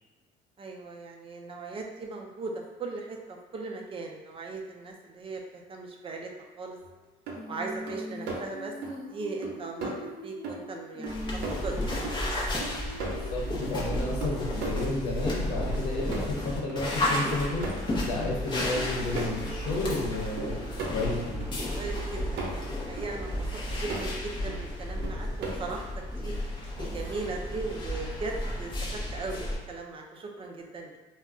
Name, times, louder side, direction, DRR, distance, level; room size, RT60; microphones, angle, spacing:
voice 1, 0.6-6.3 6.6-6.8 7.5-8.7 9.1-12.2 20.5-20.7 21.7-23.5 23.7-26.3 26.8-31.0, right 3 dB, 30° right, 1 dB, 0.4 m, -38 dB
sound 1, 6.8-6.9 7.3-7.4 7.9-8.4 8.8-9.0 9.4-9.5 9.8-10.0 10.4-10.7 11.0-11.8 12.0-13.7 14.2-15.3 15.7-16.4 16.7-16.8 17.2-18.3 18.8-19.3 19.7-19.8 20.4-21.5 22.0-22.7 23.0-23.1 23.5-24.1 24.5-24.6 25.0-25.7, right 3 dB, 80° right, 0.7 m, -37 dB
Female singing, 7.3-16.2 18.4-22.6, equal, 55° left, 0.9 m, -45 dB
sound 2, 11.1-29.6, left 1 dB, 25° left, 0.7 m, -33 dB
voice 2, 13.3-17.7 18.1-20.5 20.9-21.4, left 2 dB, 85° left, -2 dB, 0.8 m, -31 dB
2.3 x 2.1 x 3.6 m, 1.1 s
cardioid pair, 110°, 17 cm